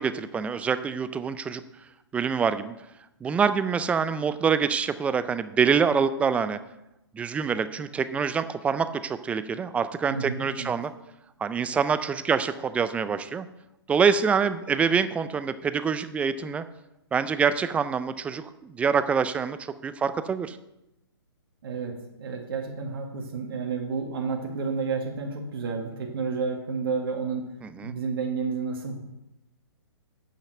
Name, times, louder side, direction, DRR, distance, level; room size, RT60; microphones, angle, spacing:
voice 1, 0.0-1.6 2.1-2.7 3.2-6.6 7.1-10.9 11.4-13.5 13.9-16.6 17.1-19.6 19.8-20.6 27.6-27.9, right 6 dB, 10° right, 12 dB, 0.4 m, -25 dB
voice 2, 10.1-10.8 21.6-27.5 27.8-29.0, right 5 dB, 60° right, 1 dB, 1.9 m, -31 dB
8.6 x 5.8 x 7.6 m, 0.91 s
hypercardioid pair, 130°, 14 cm